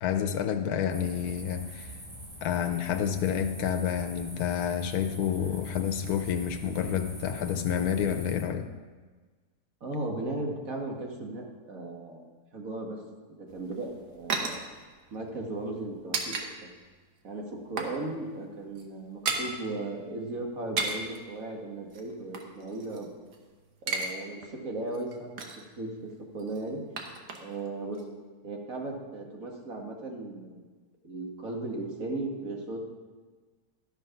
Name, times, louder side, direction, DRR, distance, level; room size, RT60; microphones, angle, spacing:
voice 1, 0.0-2.0 2.4-8.7, left 8 dB, 80° left, 7 dB, 1.2 m, -29 dB
sound 1, 0.9-8.4, equal, 25° right, 2.1 m, -44 dB
voice 2, 9.8-12.2 12.5-13.0 13.3-14.6 15.1-16.4 16.6-16.7 17.2-23.1 23.9-26.8 27.4-28.0 28.4-30.7 31.0-32.8, right 2 dB, 60° right, 0 dB, 1.9 m, -36 dB
sound 2, 13.5-16.5 16.8-16.9 17.3-18.0 18.3-18.4 18.7-19.5 20.5-21.2 21.9-23.4 23.7-24.1 24.4-24.5 24.9-25.7 26.4-27.7 27.9-28.0, right 4 dB, 85° right, 1.6 m, -34 dB
12.0 x 5.9 x 5.7 m, 1.4 s
omnidirectional pair, 1.7 m